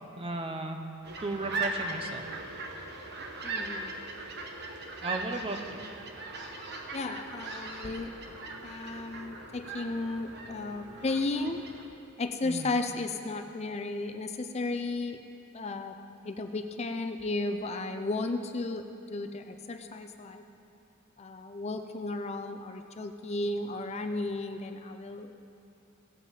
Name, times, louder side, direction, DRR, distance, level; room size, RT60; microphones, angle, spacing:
voice 1, 0.2-0.8 1.2-2.2 5.0-5.8 12.4-12.8, right 2 dB, 25° right, 5 dB, 0.8 m, -35 dB
sound 1, 1.0-11.8, right 3 dB, 55° right, 1.1 m, -39 dB
voice 2, 3.4-3.9 6.9-8.1 8.6-11.7 12.2-15.2 15.5-16.0 16.2-20.4 21.2-25.4, left 2 dB, 30° left, 6 dB, 0.5 m, -34 dB
17.5 x 7.8 x 5.0 m, 2.8 s
head